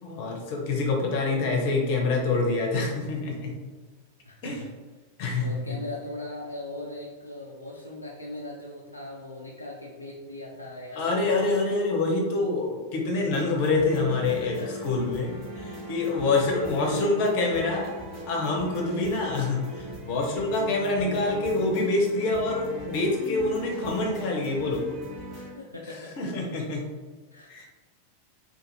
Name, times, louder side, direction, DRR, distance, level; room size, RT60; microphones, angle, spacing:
voice 1, 0.0-3.5 4.4-4.6 5.2-5.6 11.0-14.6 14.8-17.9 18.3-24.8 26.2-26.8 27.5-27.6, left 3 dB, 45° left, 0 dB, 0.6 m, -26 dB
voice 2, 4.3-4.7 5.4-11.5 14.3-14.8 15.5-16.2 16.6-17.1 25.4-26.1 27.3-27.6, left 2 dB, 85° left, -4 dB, 0.3 m, -39 dB
sound 1, 13.3-25.5, left 1 dB, 35° right, 0.9 m, -39 dB
2.5 x 2.5 x 2.7 m, 1.3 s
figure-of-eight pair, 90°, 0 cm